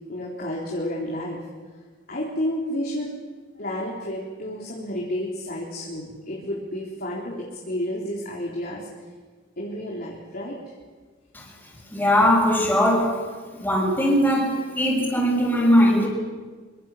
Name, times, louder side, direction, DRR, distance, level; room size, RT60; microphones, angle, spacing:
voice 1, 0.1-1.4 2.1-3.1 3.6-8.9 9.6-10.6, left 1 dB, 50° left, -3 dB, 3.9 m, -31 dB
voice 2, 11.9-13.2 13.5-16.1, equal, 10° left, -4 dB, 6.7 m, -20 dB
25.0 x 24.5 x 7.4 m, 1.4 s
head